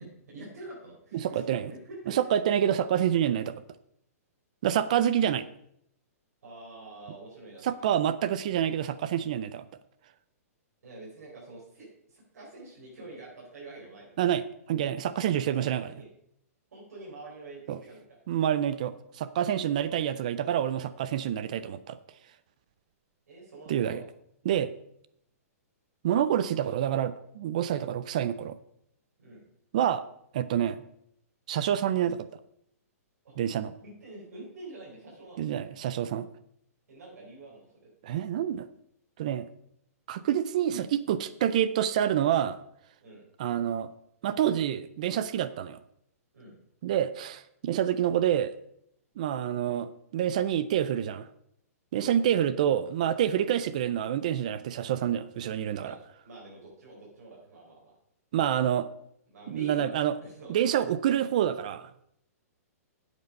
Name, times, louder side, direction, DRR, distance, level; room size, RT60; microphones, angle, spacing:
voice 1, 0.0-2.2 6.4-7.7 10.8-14.2 15.4-16.1 16.7-18.2 23.3-24.1 29.2-29.4 33.2-33.3 33.8-35.6 36.9-37.7 43.0-43.3 46.3-46.5 51.9-52.2 55.8-56.0 56.2-57.9 59.3-59.9 60.2-60.8, right 2 dB, 75° right, -5 dB, 4.5 m, -46 dB
voice 2, 1.1-1.7 2.1-3.6 4.6-5.5 7.6-9.7 14.2-15.9 17.7-17.8 18.3-22.0 23.7-24.0 24.4-24.7 26.0-28.6 29.7-30.0 30.3-30.8 31.5-32.2 33.4-33.7 35.4-36.3 38.0-38.7 39.2-39.5 40.1-42.6 43.4-43.9 44.2-45.8 46.8-48.5 49.2-51.3 51.9-56.0 58.3-58.9 59.5-60.2 60.5-61.9, right 10 dB, 30° right, 15 dB, 0.3 m, -27 dB
9.4 x 8.0 x 5.2 m, 0.73 s
hypercardioid pair, 180°, 9 cm